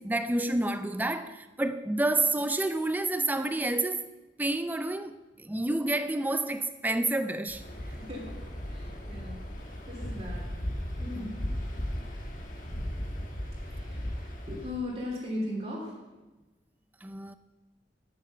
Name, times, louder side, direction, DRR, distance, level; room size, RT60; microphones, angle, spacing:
voice 1, 0.0-4.0 4.4-7.7 11.1-11.3 17.0-17.3, right 2 dB, 10° right, 0.4 m, -29 dB
Waves surf, 7.5-14.8, equal, 45° left, 1.3 m, -36 dB
voice 2, 8.7-9.4 9.9-10.5 11.0-11.4 13.7-14.2 14.5-15.9, left 1 dB, 30° right, 2.9 m, -37 dB
10.5 x 6.9 x 5.6 m
head